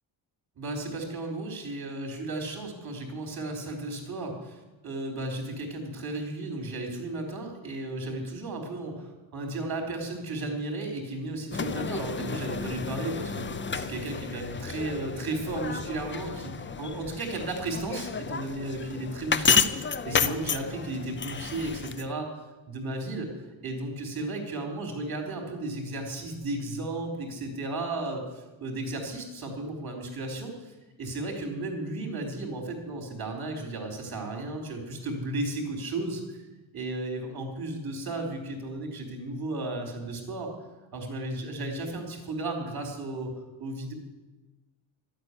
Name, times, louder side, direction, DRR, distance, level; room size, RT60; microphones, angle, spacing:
voice 1, 0.6-22.3 22.7-23.3 23.6-36.4 36.7-40.5 40.9-43.3 43.6-43.9, right 2 dB, 50° right, 3 dB, 4.0 m, -34 dB
sound 1, 11.5-22.1, left 6 dB, 25° left, 0.5 m, -31 dB
12.5 x 8.8 x 9.7 m, 1.2 s
wide cardioid pair, 150°, 48 cm